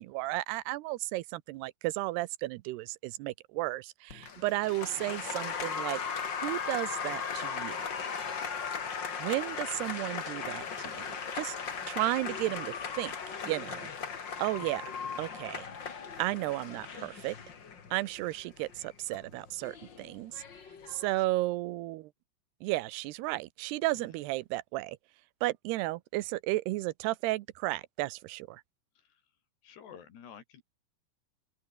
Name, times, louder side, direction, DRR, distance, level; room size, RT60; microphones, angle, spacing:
voice 1, 0.0-6.0 6.4-7.8 9.2-15.7 16.2-17.4 17.9-20.4 20.9-22.1 22.6-25.0 25.4-28.6, right 19 dB, 85° right, 2.8 m, -34 dB
Applause, 4.1-21.2, left 6 dB, 35° left, 2.0 m, -38 dB
voice 2, 29.6-30.6, left 8 dB, 90° left, 5.5 m, -50 dB
open air
omnidirectional pair, 4.6 m